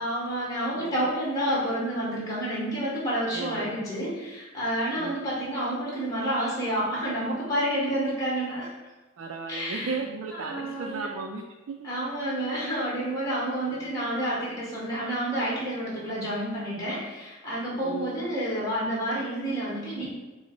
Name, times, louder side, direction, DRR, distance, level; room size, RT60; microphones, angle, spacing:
voice 1, 0.0-8.7 9.5-10.0 10.3-11.1 11.8-20.0, right 1 dB, 15° left, -6 dB, 1.1 m, -29 dB
voice 2, 3.3-3.7 5.0-5.2 9.2-11.8 13.7-13.9 17.8-18.3, right 4 dB, 80° right, 2 dB, 0.4 m, -35 dB
5.3 x 2.0 x 4.4 m, 1.2 s
head